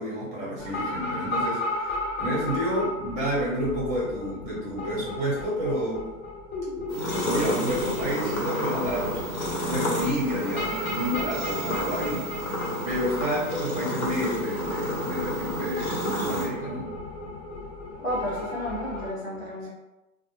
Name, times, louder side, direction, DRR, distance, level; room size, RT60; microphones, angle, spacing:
voice 1, 0.0-1.9 2.2-6.1 7.2-9.2 9.7-12.3 12.8-16.9, equal, 15° right, -6 dB, 0.8 m, -29 dB
sound 1, 0.6-19.1, left 2 dB, 45° left, 1.1 m, -35 dB
sound 2, 6.9-16.5, equal, 70° left, 1.0 m, -30 dB
voice 2, 18.0-19.7, equal, 20° left, -10 dB, 0.6 m, -32 dB
2.1 x 2.0 x 3.1 m, 0.97 s
hypercardioid pair, 125°, 43 cm